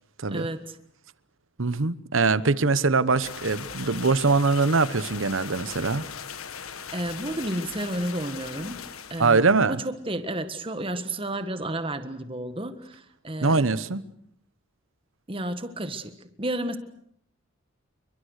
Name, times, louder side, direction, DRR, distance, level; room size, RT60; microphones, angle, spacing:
voice 1, 0.3-0.8 6.9-8.8 9.1-13.7 15.3-16.8, right 1 dB, 25° right, 1.5 m, -32 dB
voice 2, 1.6-6.1 9.2-9.8 13.4-14.0, right 4 dB, 70° right, 1.0 m, -22 dB
sound 1, 3.2-9.4, left 7 dB, 90° left, 1.6 m, -39 dB
29.0 x 23.0 x 6.6 m
head